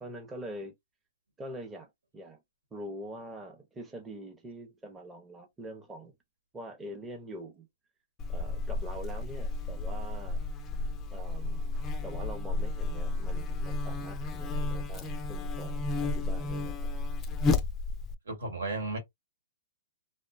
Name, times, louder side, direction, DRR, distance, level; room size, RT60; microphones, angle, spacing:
voice 1, 0.0-0.7 1.4-2.4 2.7-6.1 6.5-7.7 8.3-10.4 11.1-11.8 12.0-16.9, right 1 dB, 15° right, 0.6 m, -44 dB
Buzz, 8.2-18.2, left 3 dB, 25° left, 0.4 m, -32 dB
voice 2, 18.2-19.0, right 2 dB, 85° right, 1.2 m, -34 dB
2.5 x 2.2 x 2.4 m
hypercardioid pair, 135°, 0 cm